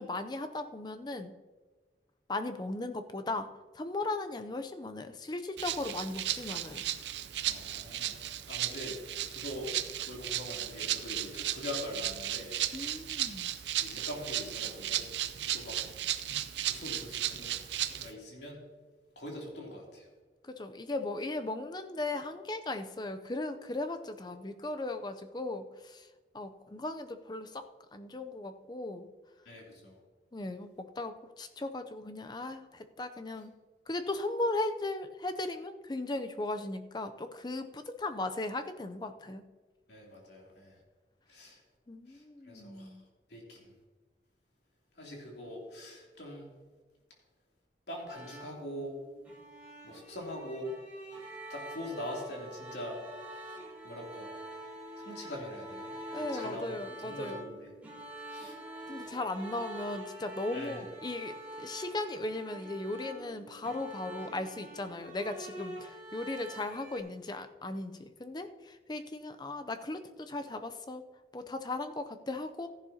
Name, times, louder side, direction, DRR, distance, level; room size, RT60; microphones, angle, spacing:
voice 1, 0.0-1.3 2.3-6.8 12.7-13.5 20.4-26.1 26.3-27.7 27.9-29.1 30.3-33.5 33.9-39.4 41.9-43.0 56.1-57.4 58.9-71.0 71.3-72.7, left 2 dB, 25° left, 9 dB, 0.5 m, -37 dB
Rattle (instrument), 5.6-18.1, right 12 dB, 85° right, 0.6 m, -35 dB
voice 2, 7.4-8.2 8.5-9.0 9.3-9.7 10.1-13.0 13.8-15.0 15.4-15.8 16.7-17.6 17.9-18.6 19.2-20.1 29.4-30.0 39.9-40.8 41.3-41.6 42.1-43.0 43.3-43.7 45.0-46.5 47.9-49.0 49.8-50.7 51.5-53.0 53.8-54.3 55.0-55.9 56.1-56.7 57.0-57.7 58.3-58.6 59.0-59.1 60.5-60.8, left 1 dB, 75° left, -1 dB, 3.0 m, -43 dB
sound 1, 48.1-67.0, right 1 dB, 10° right, 2.5 m, -46 dB
14.0 x 11.0 x 2.8 m, 1.3 s
head